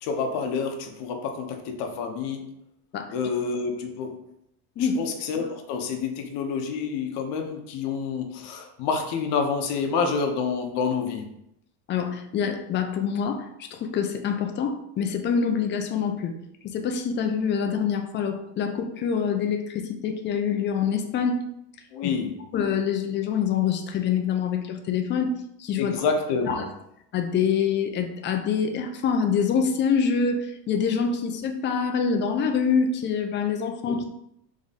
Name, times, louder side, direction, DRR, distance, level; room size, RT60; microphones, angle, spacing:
voice 1, 0.0-2.4 3.1-4.2 4.8-11.3 21.9-22.3 25.8-26.7 33.9-34.0, left 5 dB, 60° left, 4 dB, 0.9 m, -28 dB
voice 2, 11.9-16.4 16.6-21.4 22.0-22.1 22.5-25.3 25.6-26.0 26.4-26.7 27.1-34.0, left 6 dB, 25° left, 5 dB, 0.4 m, -25 dB
3.7 x 3.1 x 4.0 m, 0.78 s
cardioid pair, 135°, 45 cm